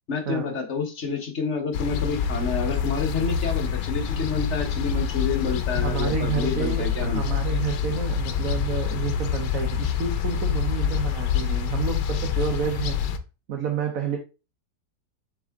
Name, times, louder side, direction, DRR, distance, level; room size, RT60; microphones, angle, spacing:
voice 1, 0.1-7.2, left 5 dB, 45° left, 4 dB, 1.4 m, -29 dB
sound 1, 1.7-13.2, left 7 dB, 90° left, 1.4 m, -26 dB
voice 2, 5.7-13.0 13.5-14.2, right 7 dB, 55° right, 2 dB, 1.3 m, -29 dB
7.2 x 3.8 x 3.6 m, 0.30 s
omnidirectional pair, 1.8 m